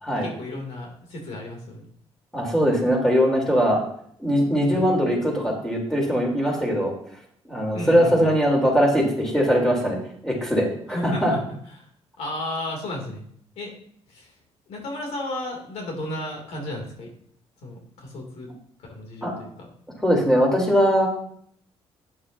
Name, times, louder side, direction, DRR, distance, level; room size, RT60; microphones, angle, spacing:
voice 1, 0.2-1.8 4.7-4.9 7.7-8.3 10.9-11.4 11.7-11.9 12.2-13.2 13.5-13.7 14.1-14.3 14.7-17.1 17.6-18.5 18.9-19.7, left 1 dB, 80° left, 1 dB, 3.1 m, -33 dB
voice 2, 2.3-3.8 4.2-6.9 7.5-10.0 10.2-11.3 19.2-19.3 20.0-21.1, equal, 5° left, -1 dB, 3.9 m, -21 dB
11.5 x 9.6 x 2.9 m, 0.64 s
cardioid pair, 90°, 11 cm